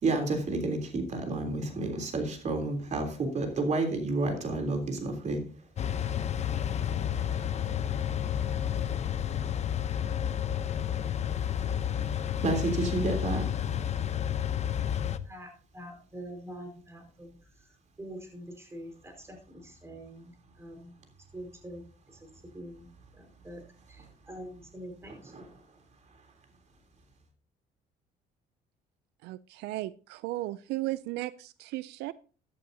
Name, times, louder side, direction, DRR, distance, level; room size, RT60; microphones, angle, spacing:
voice 1, 0.0-5.4 8.0-8.1 8.6-8.7 12.4-13.5 25.3-25.4, right 2 dB, 45° right, 4 dB, 3.4 m, -30 dB
sound 1, 5.8-15.2, left 9 dB, 40° left, 0.8 m, -31 dB
voice 2, 15.2-20.9 21.3-22.3 22.5-22.9 23.1-23.6 23.9-25.5, right 1 dB, 15° right, 3 dB, 4.9 m, -45 dB
voice 3, 29.2-32.1, right 17 dB, 85° right, 17 dB, 0.4 m, -35 dB
15.0 x 11.0 x 2.8 m, 0.38 s
cardioid pair, 110°, 17 cm